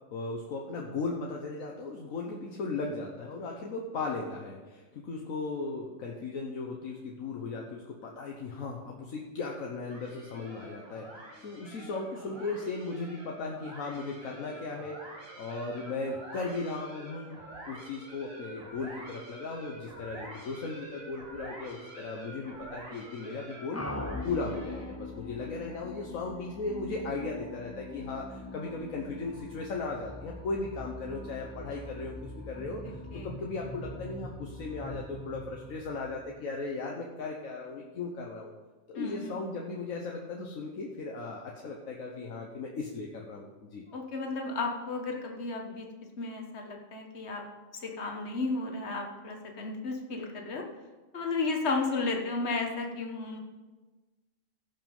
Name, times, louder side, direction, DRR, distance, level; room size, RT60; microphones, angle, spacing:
voice 1, 0.1-15.0 15.4-17.4 17.6-23.9 24.2-38.5 38.9-43.8, left 3 dB, 80° left, 0 dB, 1.5 m, -37 dB
sound 1, 9.9-25.0, right 1 dB, 80° right, 3.1 m, -47 dB
sound 2, 23.7-36.6, left 2 dB, 20° left, 0.4 m, -42 dB
voice 2, 39.0-39.4 43.9-45.9 46.2-47.4 47.7-50.7 51.1-53.4, left 3 dB, 55° left, 2 dB, 1.6 m, -33 dB
17.0 x 5.7 x 5.4 m, 1.3 s
omnidirectional pair, 1.4 m